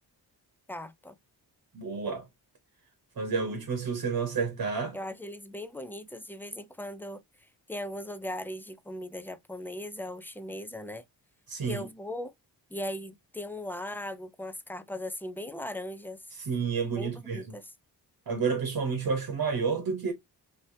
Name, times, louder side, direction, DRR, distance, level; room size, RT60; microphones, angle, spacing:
voice 1, 0.7-1.2 4.9-7.2 7.7-11.0 11.6-12.3 12.7-16.2 17.0-17.6, left 1 dB, 5° left, 0.5 m, -38 dB
voice 2, 1.7-2.3 3.2-5.0 11.5-11.9 16.3-17.5 18.3-20.1, right 5 dB, 50° right, 1.1 m, -30 dB
3.1 x 2.9 x 2.6 m
cardioid pair, 50°, 43 cm